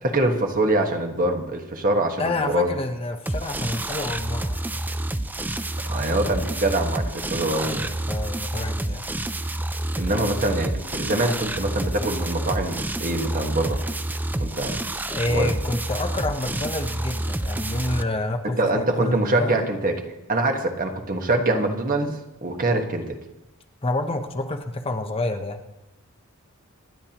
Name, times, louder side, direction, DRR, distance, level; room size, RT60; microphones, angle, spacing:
voice 1, 0.0-2.7 5.9-7.9 9.9-13.8 14.4-14.8 15.3-15.5 18.4-20.0 20.3-23.1, right 2 dB, 40° right, 4 dB, 1.4 m, -24 dB
voice 2, 2.2-4.8 7.6-9.0 15.1-19.6 23.8-25.6, left 2 dB, 25° left, 5 dB, 0.9 m, -28 dB
sound 1, 3.3-18.0, right 1 dB, 10° right, 0.4 m, -28 dB
26.0 x 10.5 x 3.0 m, 0.97 s
head